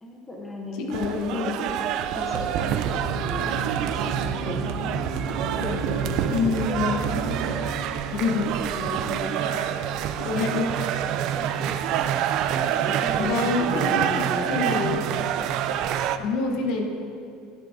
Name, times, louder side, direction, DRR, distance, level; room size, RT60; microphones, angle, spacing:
voice 1, 0.0-1.8 2.1-5.0 5.6-9.9 10.4-10.9 11.4-12.0 12.8-14.5 14.9-15.3, left 1 dB, 10° left, -1 dB, 0.8 m, -36 dB
voice 2, 0.8-1.6 6.3-7.1 8.1-8.5 10.2-10.6 12.6-12.9 13.2-15.0 16.2-16.8, left 4 dB, 55° left, 2 dB, 1.1 m, -27 dB
sound 1, 0.9-16.2, right 10 dB, 45° right, 0.3 m, -27 dB
sound 2, 2.3-9.3, right 4 dB, 80° right, 0.9 m, -32 dB
12.0 x 10.5 x 2.7 m, 2.6 s
cardioid pair, 170°, 0 cm